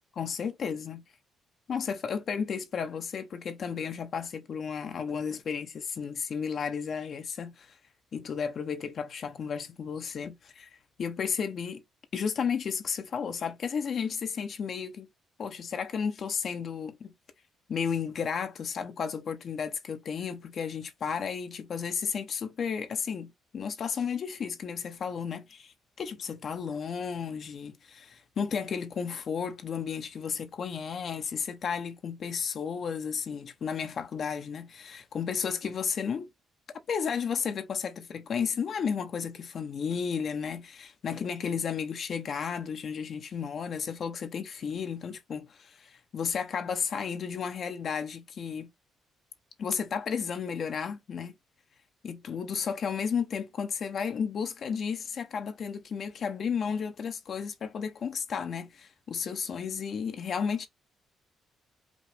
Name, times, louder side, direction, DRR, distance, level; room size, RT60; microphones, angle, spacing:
voice 1, 0.2-1.0 1.7-7.8 8.1-10.7 11.0-11.8 12.1-15.1 15.4-17.1 17.7-36.3 36.9-48.7 49.6-51.3 52.0-60.7, left 6 dB, 55° left, 0.8 m, -33 dB
5.1 x 2.4 x 3.3 m
cardioid pair, 90°, 0 cm